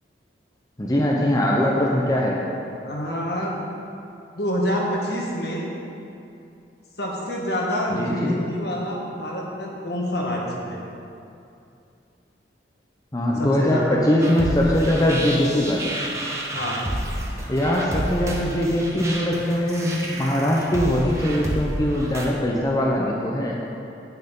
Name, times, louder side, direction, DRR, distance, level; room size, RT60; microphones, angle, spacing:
voice 1, 0.8-2.4 7.9-8.5 13.1-15.9 17.5-23.6, left 1 dB, 20° left, -3 dB, 0.7 m, -21 dB
voice 2, 2.8-3.6 4.3-5.6 7.0-10.8 13.4-14.3 16.5-16.9, equal, 60° left, -2 dB, 1.5 m, -27 dB
sound 1, 14.2-22.2, right 1 dB, 15° right, 1.0 m, -30 dB
9.4 x 8.9 x 3.8 m, 2.6 s
head